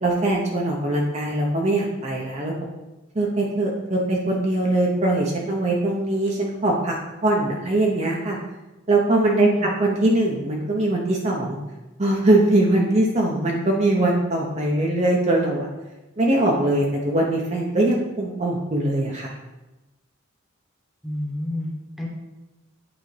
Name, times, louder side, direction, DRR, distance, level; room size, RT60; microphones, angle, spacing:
voice 1, 0.0-2.5 3.1-6.9 7.2-8.4 8.9-9.5 9.8-11.6 12.0-15.7 16.2-19.3, right 2 dB, 35° right, -2 dB, 0.7 m, -21 dB
voice 2, 9.3-9.7 21.0-22.1, left 2 dB, ahead, -3 dB, 1.1 m, -29 dB
8.6 x 3.9 x 3.3 m, 1.1 s
head